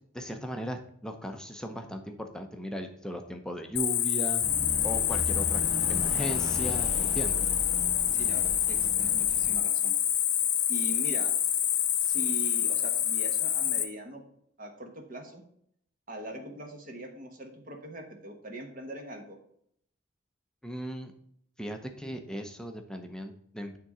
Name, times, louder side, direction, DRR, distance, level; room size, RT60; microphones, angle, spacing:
voice 1, 0.1-4.4 4.8-5.6 5.9-7.5 20.6-21.1 21.6-23.8, equal, 5° left, 4 dB, 0.6 m, -37 dB
Cricket, 3.8-13.8, left 10 dB, 50° left, 0.8 m, -27 dB
sound 1, 4.4-9.6, left 1 dB, 20° right, 3.4 m, -37 dB
voice 2, 8.1-9.9 10.7-11.3 12.0-14.2 14.6-15.4 16.1-19.4, right 1 dB, 40° right, 3 dB, 1.2 m, -41 dB
9.2 x 3.7 x 5.5 m, 0.69 s
head